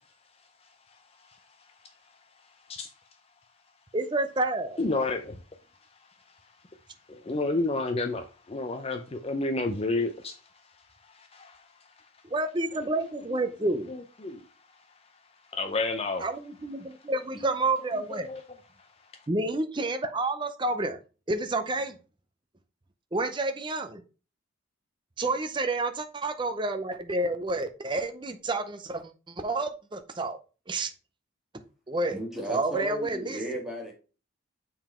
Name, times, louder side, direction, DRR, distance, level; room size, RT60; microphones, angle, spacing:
voice 1, 3.9-4.8 12.2-13.9 16.2-18.3 19.3-21.0 21.3-21.9 23.1-24.0 25.2-30.4 30.7-30.9 31.9-32.2 32.5-33.4, right 2 dB, 25° right, 0.6 m, -29 dB
voice 2, 4.8-5.4 7.1-10.4 11.1-11.6 12.7-13.4 13.9-14.4 15.5-16.2 18.1-18.4, left 2 dB, 30° left, 0.5 m, -31 dB
voice 3, 32.1-33.9, right 1 dB, ahead, 1.9 m, -35 dB
7.0 x 3.9 x 4.3 m
head